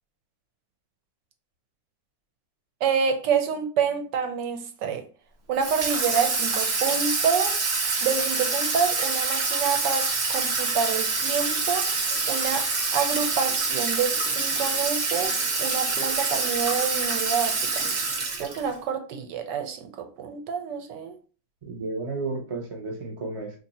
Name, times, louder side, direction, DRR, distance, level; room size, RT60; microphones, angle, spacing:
voice 1, 2.8-5.0 5.5-7.7 8.0-11.9 12.3-12.7 12.9-17.8 18.4-21.2, right 6 dB, 75° right, 1.2 m, -27 dB
Water tap faucet / Sink (filling or washing), 5.6-18.7, right 4 dB, 55° right, 0.8 m, -26 dB
voice 2, 21.7-23.6, right 3 dB, 40° right, 0.4 m, -32 dB
2.8 x 2.7 x 4.0 m
omnidirectional pair, 2.0 m